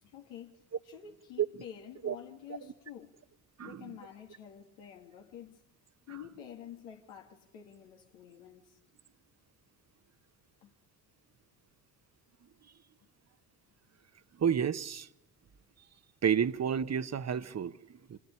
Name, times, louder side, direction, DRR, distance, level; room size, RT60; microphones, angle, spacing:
voice 1, 0.0-3.2 3.6-5.6 6.1-8.8 10.6-10.7, left 9 dB, 80° left, 2.1 m, -49 dB
voice 2, 14.4-15.1 16.2-18.2, right 8 dB, 35° right, 1.1 m, -31 dB
26.0 x 19.0 x 9.9 m
hypercardioid pair, 55°, 44 cm